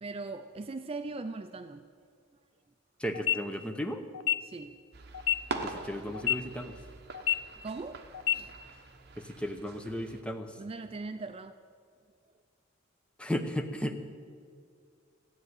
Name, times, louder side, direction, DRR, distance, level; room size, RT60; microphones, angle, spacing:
voice 1, 0.0-1.8 4.4-4.8 7.6-8.0 8.3-8.5 10.6-11.6, right 3 dB, 30° right, 9 dB, 0.4 m, -40 dB
voice 2, 3.0-4.0 5.6-6.7 9.2-10.5 13.2-14.2, equal, 5° left, 6 dB, 0.8 m, -35 dB
sound 1, 3.1-3.4 4.1-4.3 5.1-5.4 6.1-6.3 7.1-7.4 8.1-8.3, left 10 dB, 90° left, 0.5 m, -27 dB
sound 2, 4.9-10.2, right 3 dB, 55° right, 1.0 m, -43 dB
13.5 x 8.0 x 9.5 m, 2.2 s
head